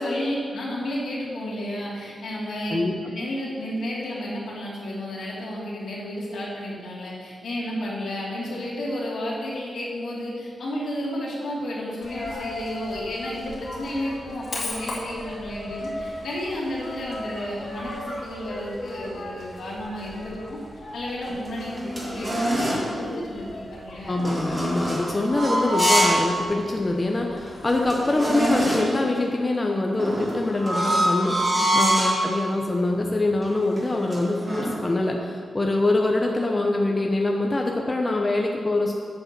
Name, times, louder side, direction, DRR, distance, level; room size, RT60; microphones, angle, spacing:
voice 1, 0.0-2.8 3.1-20.6 20.9-24.1 31.6-31.9, left 1 dB, 75° left, -5 dB, 2.6 m, -32 dB
Coin (dropping), 12.0-28.6, left 1 dB, 55° left, 2.1 m, -38 dB
sound 1, 21.3-22.9 24.2-26.3 26.7-26.8 27.4-27.5 27.7-29.0 30.0-32.2 32.9-33.1 33.4-34.7, equal, 25° right, 2.1 m, -25 dB
voice 2, 24.1-38.9, left 2 dB, 20° left, 1 dB, 0.7 m, -24 dB
8.0 x 7.1 x 5.9 m, 2.1 s
wide cardioid pair, 145°, 0 cm